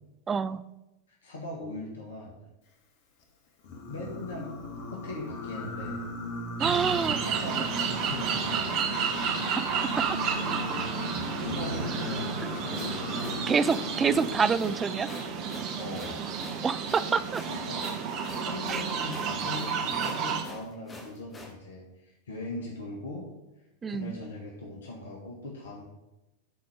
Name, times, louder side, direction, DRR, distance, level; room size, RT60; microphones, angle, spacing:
voice 1, 0.3-0.6 6.6-7.2 13.5-15.1 16.6-17.4 18.7-18.8 23.8-24.2, right 5 dB, 20° right, 14 dB, 0.4 m, -27 dB
voice 2, 1.2-2.4 3.9-4.5 4.9-6.0 7.1-8.7 9.5-9.7 11.1-13.5 15.8-16.3 17.5-17.9 18.2-23.3 23.9-25.9, left 2 dB, 65° left, -1 dB, 1.6 m, -40 dB
Singing, 3.6-14.3, left 2 dB, 50° left, 1.5 m, -38 dB
sound 1, 6.6-20.4, right 6 dB, 40° right, 1.1 m, -31 dB
sound 2, 12.7-21.5, left 1 dB, 20° left, 1.6 m, -45 dB
12.5 x 4.3 x 5.0 m, 0.96 s
figure-of-eight pair, 90°, 0 cm